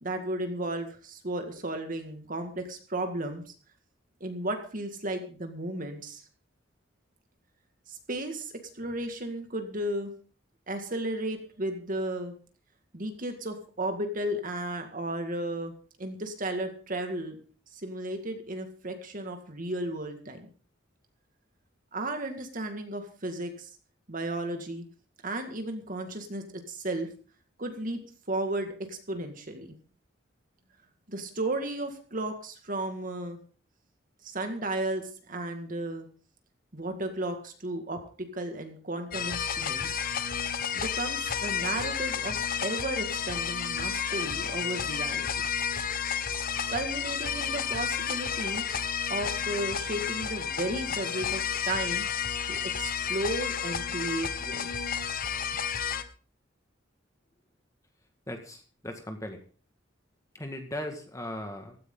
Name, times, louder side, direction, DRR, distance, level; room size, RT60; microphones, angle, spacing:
voice 1, 0.0-3.5 4.2-6.2 7.9-10.1 10.7-12.3 12.9-15.7 16.0-17.4 17.7-20.5 21.9-23.7 24.1-24.8 25.2-27.1 27.6-28.0 28.3-29.7 31.1-33.4 34.2-36.1 36.7-40.0 40.7-45.3 46.7-48.6 49.1-52.1 52.5-54.9, right 1 dB, 45° right, 5 dB, 2.1 m, -34 dB
sound 1, 39.1-56.0, left 7 dB, 50° left, 1.3 m, -31 dB
voice 2, 58.3-59.4 60.3-61.8, left 1 dB, 15° left, 5 dB, 1.9 m, -38 dB
16.0 x 14.5 x 3.9 m, 0.39 s
head